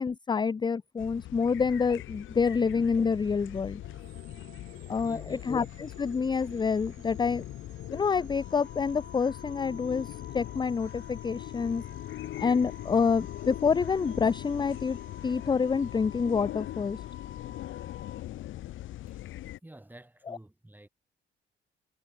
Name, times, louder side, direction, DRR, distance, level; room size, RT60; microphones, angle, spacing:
voice 1, 0.0-3.8 4.9-7.4 7.9-11.8 12.4-15.0 15.2-17.0 20.3-20.4, left 5 dB, 25° left, 0.5 m, -27 dB
sound 1, 1.0-19.6, left 14 dB, 80° left, 1.4 m, -41 dB
sound 2, 3.8-16.0, right 14 dB, 80° right, 5.5 m, -59 dB
voice 2, 4.8-5.4 19.1-19.3 19.6-20.9, right 1 dB, 10° right, 6.9 m, -50 dB
Wind instrument woodwind instrument, 8.3-18.2, left 8 dB, 50° left, 3.7 m, -50 dB
cardioid pair, 90°, 20 cm